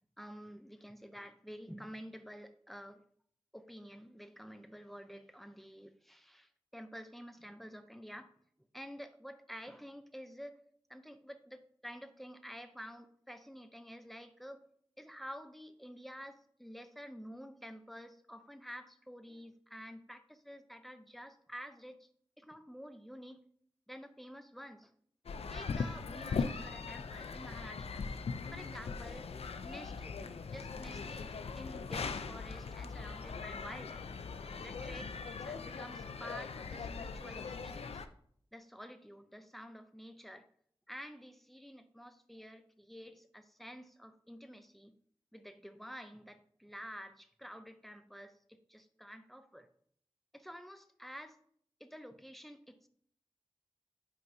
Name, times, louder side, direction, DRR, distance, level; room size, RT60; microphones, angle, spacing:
voice 1, 0.2-3.0 3.5-8.3 8.7-10.6 10.9-14.7 15.0-22.1 22.4-23.4 23.9-24.9 25.5-28.1 28.5-29.3 29.6-34.1 34.6-38.0 38.5-40.5 40.9-44.9 45.3-49.7 50.3-51.4 51.8-52.9, equal, ahead, 9 dB, 0.6 m, -50 dB
sound 1, 25.3-38.1, left 5 dB, 85° left, 0.4 m, -40 dB
11.0 x 4.6 x 2.7 m, 0.63 s
wide cardioid pair, 65°, 10 cm